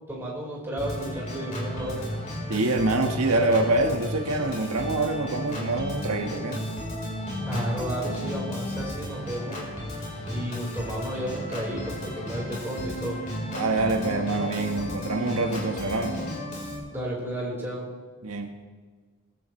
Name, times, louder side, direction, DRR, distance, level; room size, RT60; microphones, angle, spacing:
voice 1, 0.1-2.0 7.5-9.7 10.3-13.2 16.9-17.9, right 1 dB, 10° right, -5 dB, 4.6 m, -32 dB
Organ, 0.8-16.8, left 1 dB, 35° left, 4.2 m, -34 dB
voice 2, 2.5-6.6 13.5-16.1 18.2-18.5, right 2 dB, 90° right, 3 dB, 1.4 m, -25 dB
20.5 x 14.5 x 3.2 m, 1.5 s
head